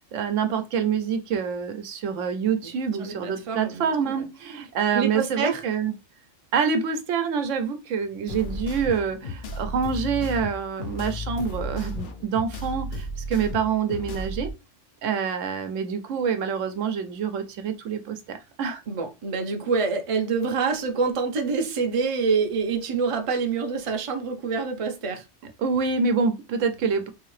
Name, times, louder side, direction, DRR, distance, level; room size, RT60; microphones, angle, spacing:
voice 1, 0.1-5.9 6.5-14.5 15.0-18.8 25.6-27.1, right 6 dB, 85° right, 1.0 m, -26 dB
voice 2, 3.0-3.9 4.9-5.6 18.9-25.2, right 5 dB, 35° right, 0.5 m, -26 dB
sound 1, 8.3-14.5, left 1 dB, 55° left, 0.7 m, -33 dB
3.6 x 2.8 x 3.1 m
omnidirectional pair, 1.2 m